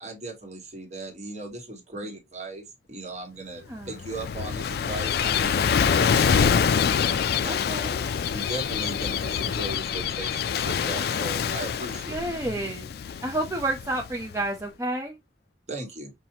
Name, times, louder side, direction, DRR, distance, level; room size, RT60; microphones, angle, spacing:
voice 1, 0.0-6.7 7.4-7.5 8.3-12.1 15.7-16.1, right 2 dB, 40° right, 1.5 m, -38 dB
Gull seagull / Waves surf, 3.8-14.4, left 7 dB, 60° left, 0.3 m, -26 dB
voice 2, 7.4-8.0 12.1-12.9 13.2-15.2, right 1 dB, 15° right, 0.5 m, -30 dB
5.6 x 2.6 x 2.8 m
head